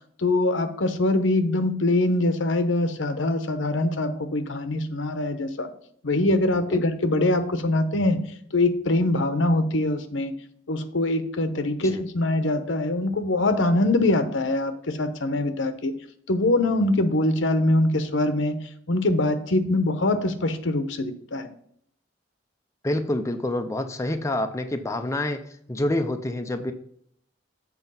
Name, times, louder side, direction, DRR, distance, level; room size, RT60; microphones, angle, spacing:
voice 1, 0.2-5.7 6.0-8.2 8.5-10.3 10.7-15.9 16.3-18.6 18.9-21.5, left 2 dB, 80° left, 9 dB, 0.9 m, -23 dB
voice 2, 22.8-26.7, left 1 dB, 15° left, 6 dB, 0.5 m, -27 dB
7.6 x 4.5 x 5.5 m, 0.65 s
head